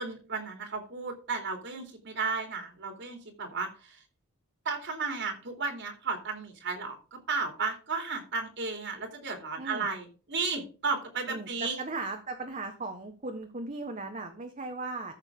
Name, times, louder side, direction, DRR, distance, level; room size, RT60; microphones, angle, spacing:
voice 1, 0.0-3.7 4.6-7.0 7.3-11.8, right 4 dB, 60° right, 4 dB, 2.9 m, -34 dB
voice 2, 9.6-9.9 11.3-15.1, right 3 dB, 35° right, 4 dB, 1.3 m, -37 dB
14.0 x 6.6 x 3.7 m, 0.36 s
head